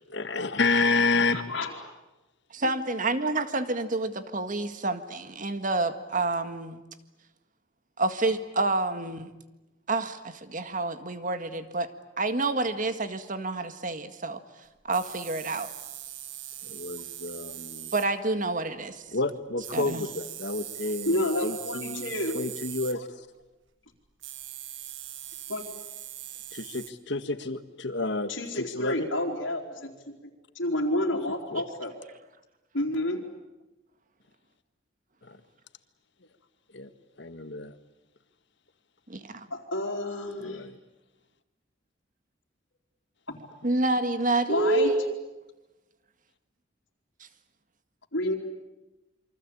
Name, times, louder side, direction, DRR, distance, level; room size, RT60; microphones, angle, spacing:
voice 1, 0.0-1.4 16.6-17.9 19.1-23.3 26.5-29.1 31.5-31.6 35.2-35.4 36.7-36.9 37.2-37.7 40.4-40.8, left 3 dB, 65° left, 10 dB, 1.7 m, -30 dB
voice 2, 1.3-1.7 2.6-2.7 21.1-22.4 25.5-25.6 28.3-29.9 30.6-31.9 32.7-33.2 39.5-40.7 43.3-43.4 44.5-44.9 48.1-48.3, left 1 dB, 80° left, -3 dB, 3.9 m, -29 dB
voice 3, 2.5-6.8 8.0-9.3 9.9-11.9 12.2-14.4 14.8-15.7 17.9-19.1 19.7-20.0 39.1-39.5 43.6-45.1, right 2 dB, 45° right, 10 dB, 1.8 m, -28 dB
sound 1, 14.9-18.1 19.6-23.0 24.2-26.9, right 12 dB, 75° right, 1.7 m, -41 dB
28.0 x 24.5 x 8.7 m, 1.0 s
head